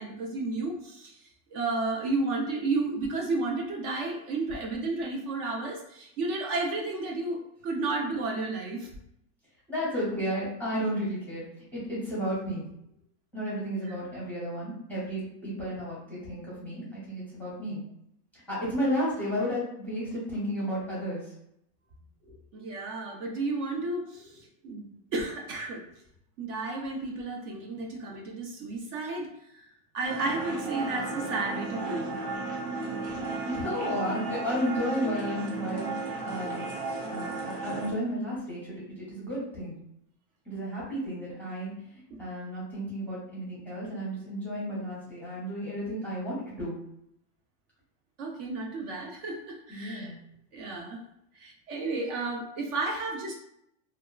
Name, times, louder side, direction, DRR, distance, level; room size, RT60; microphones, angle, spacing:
voice 1, 0.0-8.9 22.5-25.8 26.4-29.3 29.9-32.2 48.2-50.1 50.5-51.0 51.3-53.4, right 3 dB, 50° right, 0 dB, 0.6 m, -32 dB
voice 2, 9.7-11.5 11.7-12.6 13.3-17.8 18.3-21.3 22.2-22.3 33.0-39.8 40.4-46.8 49.7-50.2, equal, 5° left, -8 dB, 0.6 m, -33 dB
sound 1, 30.0-37.9, right 3 dB, 85° right, 1.2 m, -34 dB
2.7 x 2.2 x 2.3 m, 0.76 s
supercardioid pair, 150°, 49 cm